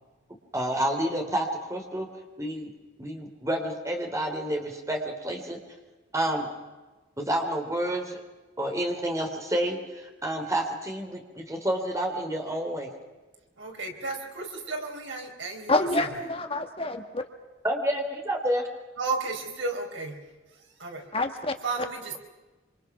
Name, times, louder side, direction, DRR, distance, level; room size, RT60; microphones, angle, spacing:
voice 1, 0.5-2.1 2.4-2.7 3.0-5.6 6.1-6.5 7.2-8.2 8.6-12.9 17.6-18.7, right 1 dB, 15° right, 3 dB, 3.3 m, -29 dB
voice 2, 13.6-15.9 19.0-20.2 20.8-21.1 21.6-22.2, right 3 dB, 80° right, 3 dB, 4.4 m, -33 dB
voice 3, 15.7-17.2 21.1-21.9, left 2 dB, 30° left, 6 dB, 1.6 m, -27 dB
26.5 x 26.0 x 6.0 m, 1.2 s
head